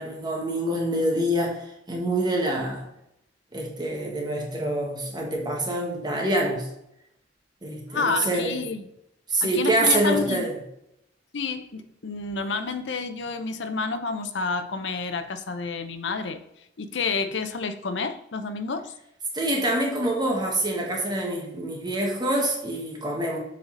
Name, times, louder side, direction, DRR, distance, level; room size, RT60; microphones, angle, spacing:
voice 1, 0.0-2.9 3.5-6.7 7.6-8.6 9.3-10.5 19.3-23.4, right 1 dB, 25° right, 0 dB, 1.5 m, -26 dB
voice 2, 7.9-8.8 9.4-10.5 11.3-16.4 16.8-18.9, left 4 dB, 65° left, 9 dB, 0.6 m, -29 dB
7.4 x 4.1 x 3.9 m, 0.81 s
head